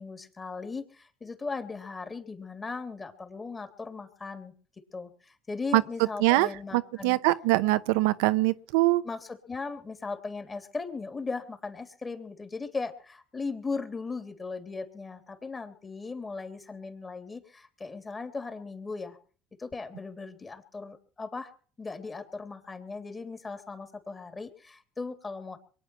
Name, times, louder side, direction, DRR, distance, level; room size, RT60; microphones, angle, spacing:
voice 1, 0.0-4.5 4.9-7.2 9.0-19.2 19.6-21.5 21.8-25.6, left 4 dB, 25° left, 3.3 m, -38 dB
voice 2, 6.7-9.0, right 19 dB, 85° right, 0.7 m, -23 dB
23.0 x 9.1 x 6.1 m
supercardioid pair, 85°, 0 cm